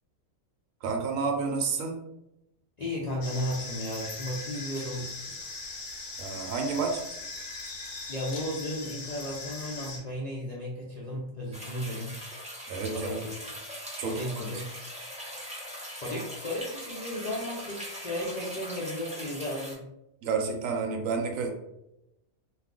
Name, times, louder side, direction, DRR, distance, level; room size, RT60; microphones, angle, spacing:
voice 1, 0.8-2.0 6.2-7.0 12.7-13.1 14.0-14.5 20.2-21.5, right 5 dB, 80° right, 2 dB, 1.0 m, -30 dB
voice 2, 2.8-5.4 8.1-12.2 12.9-13.3 14.0-14.7 16.0-19.8, left 1 dB, 80° left, -4 dB, 0.3 m, -34 dB
sound 1, 3.2-10.0, left 3 dB, 60° left, 1.0 m, -40 dB
sound 2, 11.5-19.7, equal, 5° right, 0.6 m, -41 dB
2.4 x 2.3 x 3.6 m, 0.88 s
omnidirectional pair, 1.4 m